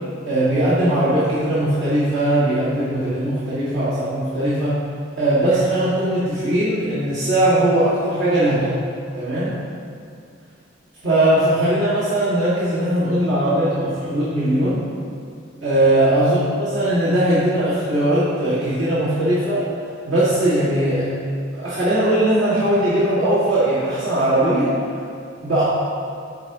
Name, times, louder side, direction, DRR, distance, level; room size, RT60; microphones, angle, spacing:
voice 1, 0.2-4.8 5.2-8.7 9.1-9.6 11.0-14.8 15.6-19.6 20.1-21.1 21.5-24.7 25.4-25.6, right 1 dB, 75° right, -12 dB, 2.2 m, -19 dB
13.0 x 6.1 x 3.0 m, 2.4 s
head